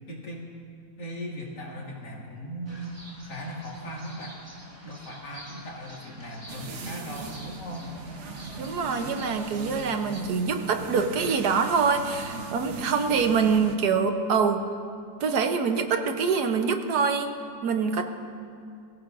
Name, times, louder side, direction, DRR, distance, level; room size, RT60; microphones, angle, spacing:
voice 1, 0.1-0.5 1.0-4.4 4.8-7.9, equal, 85° left, -3 dB, 2.9 m, -38 dB
sound 1, 2.7-10.2, right 1 dB, 15° right, 1.6 m, -48 dB
sound 2, 6.5-13.8, right 3 dB, 50° right, 1.0 m, -39 dB
voice 2, 8.6-14.7 15.2-17.3 17.6-18.0, right 5 dB, 70° right, 6 dB, 1.4 m, -25 dB
22.5 x 15.5 x 2.6 m, 2.4 s
omnidirectional pair, 1.8 m